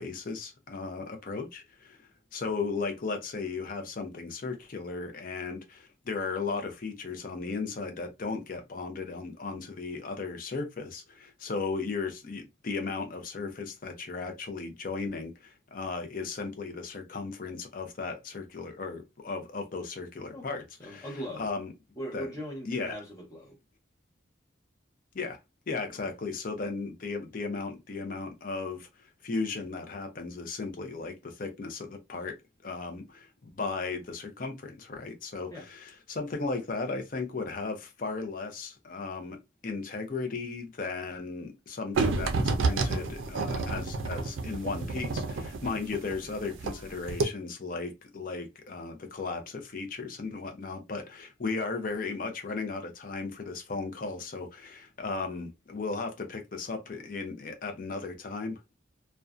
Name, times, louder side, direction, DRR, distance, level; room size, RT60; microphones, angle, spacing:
voice 1, 0.0-21.7 22.1-22.4 22.7-23.0 25.1-25.4 25.7-32.4 32.6-39.4 39.6-58.6, left 4 dB, 45° left, 0.5 m, -36 dB
voice 2, 20.8-21.5 22.0-23.6 25.9-26.0 35.5-35.7, equal, 15° left, 0.8 m, -39 dB
sound 1, 42.0-46.8 47.1-47.2, right 3 dB, 75° right, 0.4 m, -29 dB
2.4 x 2.1 x 2.4 m
head